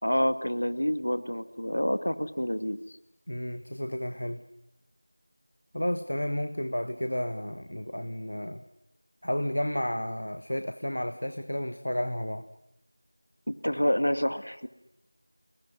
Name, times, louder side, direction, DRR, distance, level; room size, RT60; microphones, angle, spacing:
voice 1, 0.0-2.8 13.5-14.7, equal, 70° left, 11 dB, 2.2 m, -28 dB
voice 2, 3.3-4.4 5.7-8.6 9.2-12.5, equal, 55° left, 10 dB, 1.3 m, -32 dB
29.0 x 20.0 x 9.7 m, 0.90 s
figure-of-eight pair, 180°, 0 cm